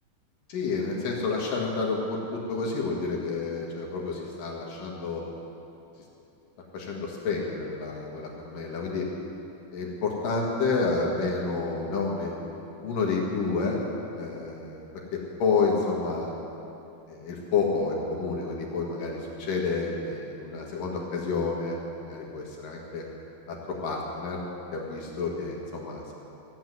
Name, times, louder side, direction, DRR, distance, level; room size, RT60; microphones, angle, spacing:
voice 1, 0.5-5.2 6.7-9.1 9.7-12.5 12.8-13.8 14.2-14.8 15.1-16.3 17.1-23.1 23.5-23.6 23.8-24.4 24.7-26.1, left 4 dB, 70° left, -2 dB, 3.2 m, -29 dB
15.0 x 8.0 x 9.3 m, 2.8 s
omnidirectional pair, 4.2 m